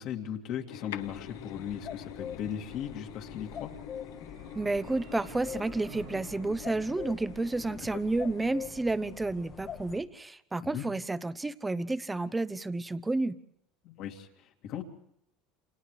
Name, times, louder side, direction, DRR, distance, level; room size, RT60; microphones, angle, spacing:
voice 1, 0.0-3.7 7.9-8.0 10.6-10.9 13.8-14.8, left 9 dB, 60° left, 2 dB, 2.5 m, -38 dB
sound 1, 0.7-8.8, left 12 dB, 80° left, 0.9 m, -47 dB
sound 2, 1.0-10.0, left 7 dB, 45° left, 1.6 m, -44 dB
sound 3, 3.8-8.0, right 8 dB, 60° right, 3.1 m, -52 dB
voice 2, 4.6-13.4, right 2 dB, 15° right, 15 dB, 1.0 m, -31 dB
29.0 x 28.0 x 3.3 m, 0.76 s
hypercardioid pair, 85°, 0 cm